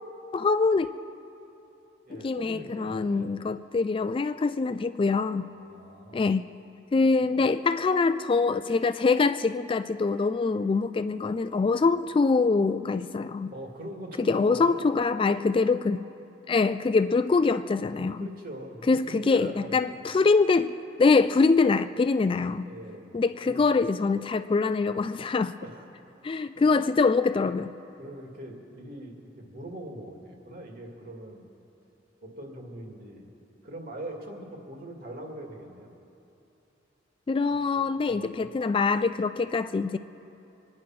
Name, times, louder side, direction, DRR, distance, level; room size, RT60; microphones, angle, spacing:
voice 1, 0.3-0.9 2.1-5.5 6.1-6.5 6.9-13.5 14.3-16.0 16.5-18.3 18.9-20.7 21.0-22.7 23.1-25.5 26.2-27.7 37.3-40.0, left 4 dB, 30° left, 12 dB, 0.3 m, -24 dB
voice 2, 2.1-3.3 5.5-6.3 7.2-7.4 11.7-11.8 13.5-14.9 18.2-20.1 22.6-23.1 23.4-23.7 25.6-25.9 26.3-26.4 28.0-31.4 32.2-33.3 33.6-35.9 37.5-38.5, right 1 dB, 50° right, 1 dB, 2.4 m, -42 dB
24.0 x 9.8 x 5.9 m, 2.9 s
head